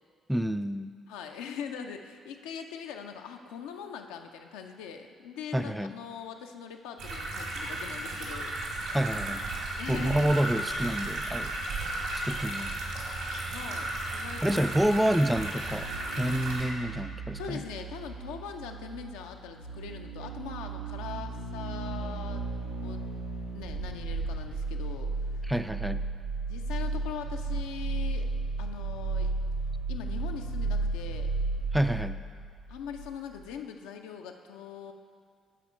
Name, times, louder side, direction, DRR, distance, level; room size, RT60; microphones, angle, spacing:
voice 1, 0.3-0.9 5.5-5.9 8.9-9.5 9.9-11.8 12.2-12.8 14.4-17.6 25.4-26.1 31.7-32.2, right 1 dB, 5° right, 10 dB, 0.3 m, -28 dB
voice 2, 1.1-8.6 9.7-10.4 13.5-14.7 17.4-22.4 22.8-23.0 23.5-25.5 26.5-28.3 28.6-29.3 29.9-31.3 32.7-34.9, left 7 dB, 70° left, 4 dB, 0.5 m, -41 dB
sound 1, 7.0-16.7, right 2 dB, 65° right, 1.5 m, -34 dB
sound 2, 15.6-33.1 33.4-33.5, right 3 dB, 85° right, 0.7 m, -34 dB
12.0 x 4.2 x 4.5 m, 2.1 s
figure-of-eight pair, 45°, 0 cm